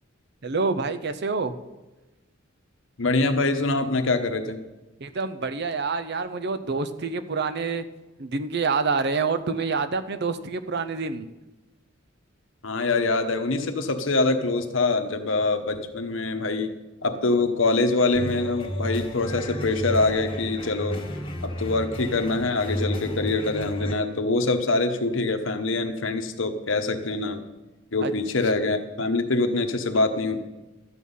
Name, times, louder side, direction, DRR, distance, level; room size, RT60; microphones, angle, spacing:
voice 1, 0.4-1.5 5.0-7.9 8.2-11.3 28.0-28.1, right 4 dB, 55° right, 11 dB, 0.6 m, -27 dB
voice 2, 3.0-4.6 12.6-16.7 17.0-21.0 21.4-27.4 27.9-30.4, left 3 dB, 70° left, 6 dB, 1.1 m, -24 dB
sound 1, 18.1-23.9, equal, 25° left, 1.8 m, -32 dB
12.5 x 8.5 x 5.5 m, 1.1 s
head